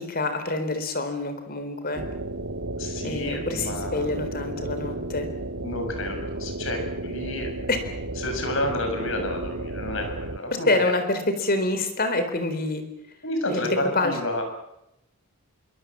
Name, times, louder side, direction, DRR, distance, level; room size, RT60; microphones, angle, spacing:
voice 1, 0.0-2.0 3.0-5.3 7.7-7.8 10.7-12.9 13.5-14.2, left 2 dB, 45° left, 8 dB, 4.0 m, -26 dB
sound 1, 1.9-10.4, right 2 dB, 65° right, 1.4 m, -33 dB
voice 2, 2.8-4.1 5.6-7.5 8.2-10.8 13.2-14.4, left 1 dB, 60° left, 5 dB, 7.2 m, -30 dB
25.5 x 24.0 x 7.6 m, 0.86 s
head